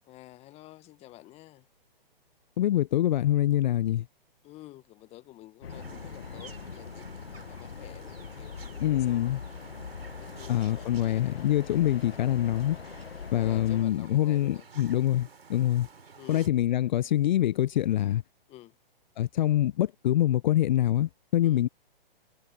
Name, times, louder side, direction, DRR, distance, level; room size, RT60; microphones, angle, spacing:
voice 1, 0.1-1.7 4.4-9.4 10.1-11.2 13.3-14.7 16.1-16.5 18.5-18.8 21.4-21.6, left 16 dB, 20° left, 1.3 m, -50 dB
voice 2, 2.6-4.0 8.8-9.4 10.5-12.8 13.3-15.9 16.3-18.2 19.2-21.7, left 13 dB, 50° left, 0.7 m, -25 dB
sound 1, 5.6-13.8, left 6 dB, 80° left, 1.5 m, -42 dB
sound 2, 5.7-16.5, right 5 dB, 80° right, 6.2 m, -51 dB
hypercardioid pair, 130°, 29 cm